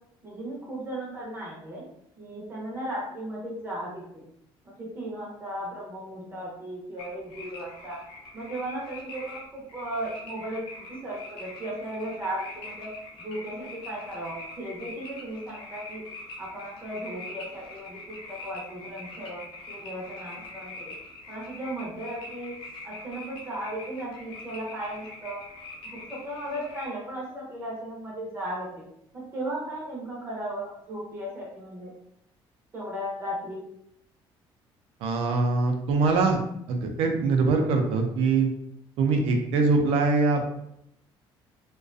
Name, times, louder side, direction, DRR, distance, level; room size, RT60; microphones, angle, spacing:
voice 1, 0.2-1.9 2.2-4.2 4.6-8.0 8.3-10.6 10.9-12.9 13.2-16.0 16.4-20.9 21.3-22.5 22.8-25.4 25.9-28.8 29.1-31.9 32.7-33.6, right 1 dB, 25° right, -4 dB, 0.6 m, -36 dB
sound 1, 7.0-26.9, left 2 dB, 60° left, 0.5 m, -43 dB
voice 2, 35.0-36.4 36.7-38.5 39.0-40.5, right 4 dB, 85° right, 4 dB, 0.4 m, -23 dB
2.3 x 2.2 x 2.5 m, 0.76 s
cardioid pair, 175°, 10 cm